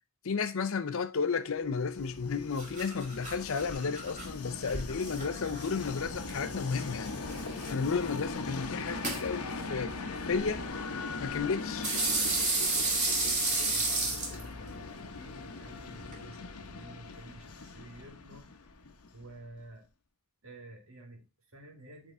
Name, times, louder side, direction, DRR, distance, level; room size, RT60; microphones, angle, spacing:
voice 1, 0.2-7.2 7.7-10.7 11.2-12.0, left 5 dB, 65° left, 0.6 m, -33 dB
Train, 1.7-19.4, left 3 dB, 85° left, 0.9 m, -40 dB
sound 1, 2.0-16.2, right 3 dB, 35° right, 2.2 m, -35 dB
voice 2, 13.5-18.5 19.1-19.9 20.4-22.1, right 2 dB, 65° right, 1.9 m, -51 dB
8.1 x 3.6 x 4.2 m
head